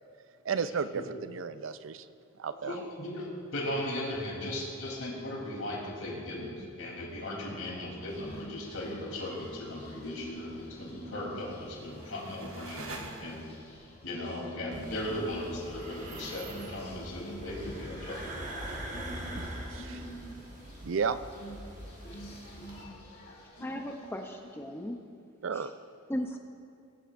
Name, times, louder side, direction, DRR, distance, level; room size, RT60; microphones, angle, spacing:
voice 1, 0.4-2.1 2.4-2.8 19.7-20.1 20.8-21.2 25.4-25.7, right 6 dB, 65° right, 12 dB, 0.4 m, -33 dB
voice 2, 2.6-3.3 3.5-13.5 14.0-18.4, left 1 dB, 80° left, -3 dB, 3.3 m, -37 dB
sound 1, 8.1-24.8, right 1 dB, 50° left, 3.3 m, -48 dB
sound 2, 11.4-13.8, right 2 dB, 90° right, 1.4 m, -46 dB
sound 3, 14.7-22.8, right 1 dB, 35° right, 1.3 m, -43 dB
voice 3, 23.6-25.0 25.5-25.7 26.1-26.4, equal, 10° left, 4 dB, 0.6 m, -36 dB
21.5 x 11.0 x 2.6 m, 2.4 s
head